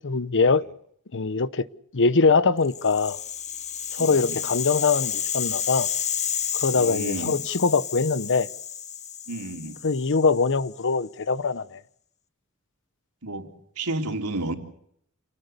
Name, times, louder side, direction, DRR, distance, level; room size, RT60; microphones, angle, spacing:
voice 1, 0.0-0.7 1.1-1.7 1.9-3.2 3.9-5.9 6.5-8.5 9.8-11.8, left 4 dB, 55° left, 0.9 m, -22 dB
Rattle (instrument), 2.6-10.8, left 9 dB, 30° left, 1.1 m, -31 dB
voice 2, 4.0-4.4 6.7-7.4 9.3-9.8 13.2-13.5 13.8-14.5, right 2 dB, 90° right, 3.6 m, -31 dB
28.0 x 19.0 x 6.8 m
head